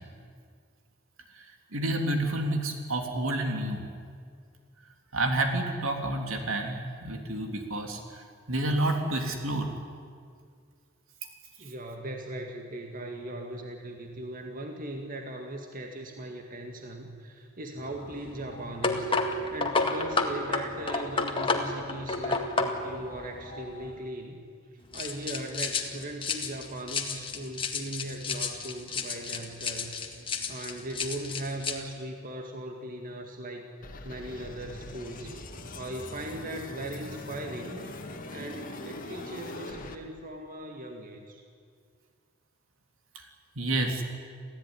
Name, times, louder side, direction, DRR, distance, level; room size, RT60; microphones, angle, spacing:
voice 1, 1.7-3.8 5.1-8.0 8.5-9.7 43.5-44.0, right 1 dB, 75° right, 4 dB, 3.3 m, -29 dB
voice 2, 11.6-24.4 24.9-30.0 30.5-33.7 34.0-35.3 35.7-37.8 38.3-41.4, right 1 dB, 45° right, 3 dB, 2.0 m, -39 dB
sound 1, 17.8-24.0 24.9-31.8, left 3 dB, 25° left, 2.0 m, -32 dB
sound 2, 33.8-40.0, left 2 dB, 45° left, 2.0 m, -42 dB
27.0 x 16.0 x 9.9 m, 2.1 s
head